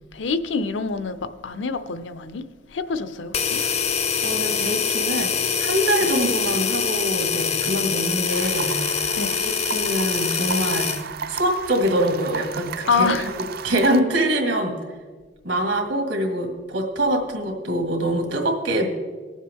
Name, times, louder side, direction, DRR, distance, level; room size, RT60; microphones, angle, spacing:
voice 1, 0.1-1.2 1.4-2.4 2.7-3.6 9.2-9.4 12.9-13.3, left 4 dB, 80° left, 0.6 m, -26 dB
sound 1, 3.3-11.0, left 6 dB, 35° left, 0.5 m, -24 dB
voice 2, 4.2-8.8 9.4-13.1 13.4-14.8 15.4-18.9, right 1 dB, 80° right, 2.0 m, -24 dB
sound 2, 8.3-14.0, right 5 dB, 55° right, 0.4 m, -34 dB
18.5 x 7.3 x 3.6 m
head